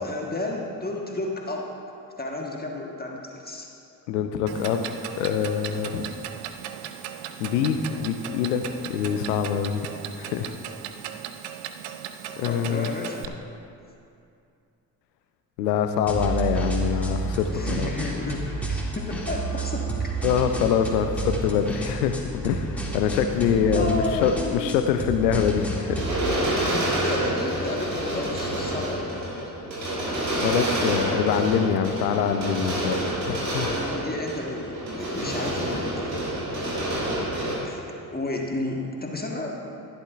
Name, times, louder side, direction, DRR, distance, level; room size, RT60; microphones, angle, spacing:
voice 1, 0.0-1.7 2.2-3.7 5.7-5.8 12.5-13.4 17.5-20.1 23.2-24.7 26.6-29.5 33.9-36.3 37.6-37.8 38.1-39.7, left 2 dB, 20° left, 0 dB, 1.4 m, -32 dB
voice 2, 4.1-4.9 5.2-6.1 7.4-9.9 10.2-10.5 12.4-12.9 15.6-17.9 20.2-26.0 30.4-33.0 33.3-33.7, left 7 dB, 75° left, 7 dB, 0.7 m, -24 dB
Clock, 4.5-13.3, right 10 dB, 60° right, 0.7 m, -37 dB
sound 1, 16.1-26.3, right 3 dB, 5° left, 2.4 m, -30 dB
sound 2, 25.6-37.5, right 1 dB, 90° right, 1.7 m, -28 dB
15.0 x 11.0 x 2.5 m, 2.6 s
figure-of-eight pair, 45°, 49 cm